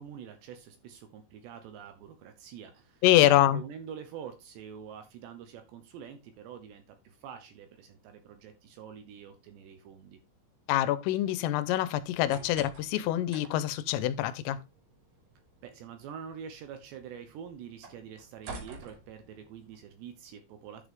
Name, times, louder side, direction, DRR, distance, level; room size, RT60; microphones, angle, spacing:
voice 1, 0.0-10.2 15.6-20.9, right 8 dB, 75° right, 2.8 m, -46 dB
voice 2, 3.0-3.6 10.7-14.6, left 14 dB, 85° left, 3.3 m, -25 dB
sound 1, 12.0-19.8, right 3 dB, 50° right, 4.0 m, -50 dB
11.0 x 6.3 x 3.5 m
omnidirectional pair, 5.8 m